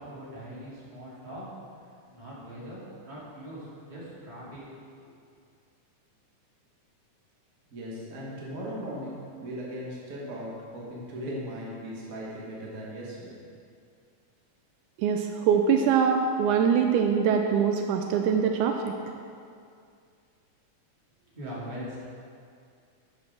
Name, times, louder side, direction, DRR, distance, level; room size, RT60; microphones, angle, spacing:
voice 1, 0.0-1.5 2.1-2.8 3.1-4.6 21.3-22.0, equal, 15° right, -8 dB, 2.0 m, -41 dB
voice 2, 7.7-13.4, equal, 50° right, -5 dB, 1.0 m, -38 dB
voice 3, 15.0-18.9, right 7 dB, 80° right, 4 dB, 1.9 m, -23 dB
7.4 x 6.5 x 6.1 m, 2.3 s
omnidirectional pair, 3.6 m